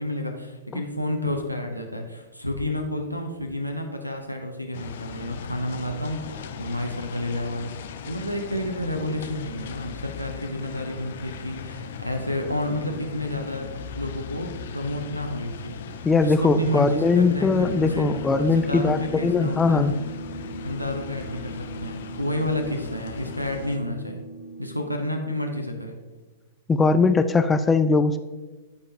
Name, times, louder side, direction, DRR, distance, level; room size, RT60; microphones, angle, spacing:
voice 1, 0.0-15.8 16.2-18.1 18.5-20.0 20.6-24.2 24.6-26.0, left 1 dB, 90° right, 5 dB, 1.0 m, -30 dB
sound 1, 4.7-23.8, left 6 dB, 55° left, 0.7 m, -38 dB
voice 2, 16.0-19.9 26.7-28.2, left 4 dB, 15° left, 10 dB, 0.4 m, -20 dB
sound 2, 17.5-24.8, right 2 dB, 85° left, 1.1 m, -38 dB
14.0 x 5.1 x 2.9 m, 1.2 s
figure-of-eight pair, 100°, 0 cm